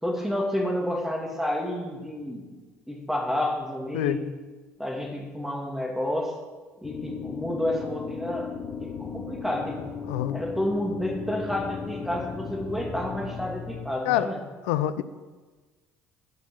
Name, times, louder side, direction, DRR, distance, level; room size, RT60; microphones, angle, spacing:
voice 1, 0.0-2.5 2.9-4.3 4.8-6.3 6.8-8.5 8.8-9.9 10.3-14.4, left 1 dB, 5° right, 1 dB, 2.4 m, -30 dB
sound 1, 6.8-13.9, left 6 dB, 45° left, 1.4 m, -36 dB
voice 2, 10.1-10.4 14.1-14.3 14.7-15.0, left 13 dB, 75° left, 13 dB, 0.4 m, -25 dB
12.5 x 5.2 x 6.7 m, 1.3 s
hypercardioid pair, 55°, 7 cm